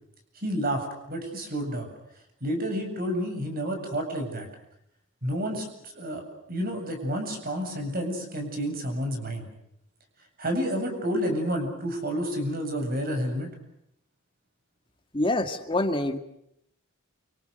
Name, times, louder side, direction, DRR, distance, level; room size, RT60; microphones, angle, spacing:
voice 1, 0.4-1.9 2.4-4.5 5.2-9.5 10.4-13.5, equal, 45° right, 5 dB, 7.9 m, -30 dB
voice 2, 15.1-16.2, left 1 dB, 25° left, 7 dB, 2.1 m, -26 dB
29.0 x 26.5 x 6.6 m, 0.77 s
head